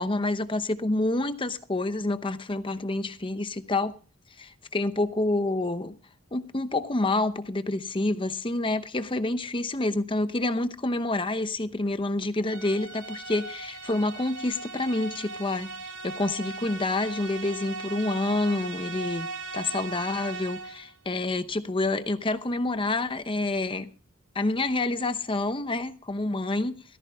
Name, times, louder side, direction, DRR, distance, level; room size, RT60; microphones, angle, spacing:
voice 1, 0.0-4.0 4.4-6.0 6.3-15.7 16.0-23.9 24.3-26.8, left 2 dB, 25° left, 0.8 m, -28 dB
sound 1, 12.5-20.9, right 3 dB, 85° right, 2.8 m, -38 dB
18.0 x 14.5 x 3.6 m
head